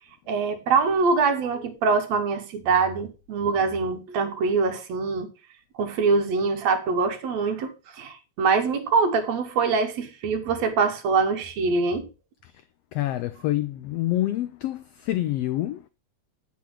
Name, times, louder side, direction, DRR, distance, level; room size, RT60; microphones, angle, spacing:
voice 1, 0.3-5.3 5.8-12.1, right 4 dB, 70° right, 2.3 m, -24 dB
voice 2, 12.9-15.8, left 14 dB, 80° left, 1.4 m, -27 dB
8.4 x 6.3 x 5.7 m
omnidirectional pair, 3.4 m